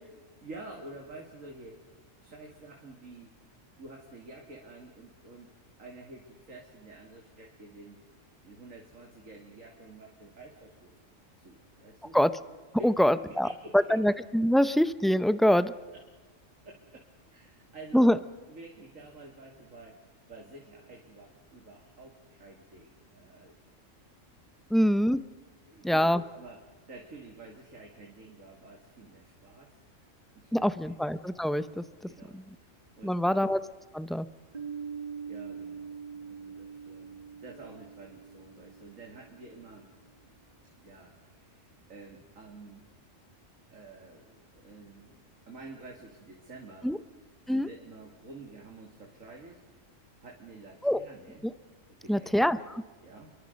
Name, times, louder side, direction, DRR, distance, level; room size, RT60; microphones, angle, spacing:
voice 1, 0.1-1.8 2.2-3.3 3.8-5.5 5.8-8.0 8.4-10.9 11.4-12.2 12.8-13.8 15.9-16.0 16.6-17.0 17.3-18.1 18.5-20.0 20.3-23.5 24.5-24.7 25.6-29.8 30.3-31.0 32.1-33.5 35.3-39.9 40.7-42.8 43.7-46.9 47.5-49.6 50.2-51.5 52.0-52.7 53.0-53.3, right 2 dB, 85° right, 0 dB, 2.9 m, -49 dB
voice 2, 12.8-13.5 13.7-15.7 17.9-18.2 24.7-25.2 25.8-26.2 30.5-31.8 33.0-33.6 33.9-34.3 46.8-47.0 47.5-47.7 50.8-51.0 51.4-51.5 52.1-52.6, equal, ahead, 13 dB, 0.4 m, -24 dB
Piano, 34.5-39.9, right 6 dB, 35° right, 1.5 m, -43 dB
28.0 x 23.0 x 5.3 m, 1.3 s
omnidirectional pair, 1.3 m